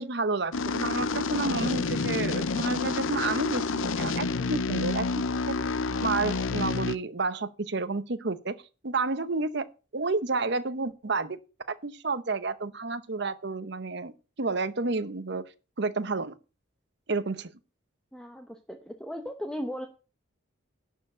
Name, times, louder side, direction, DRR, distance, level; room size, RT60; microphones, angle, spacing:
voice 1, 0.0-5.5 6.0-8.5 8.8-11.4 11.7-14.1 14.4-15.4 15.8-16.4 17.1-17.5, right 3 dB, 55° right, 0.8 m, -30 dB
sound 1, 0.5-7.0, left 4 dB, 75° left, 0.6 m, -29 dB
voice 2, 18.1-19.9, equal, 5° left, 0.9 m, -37 dB
11.0 x 4.7 x 7.8 m
head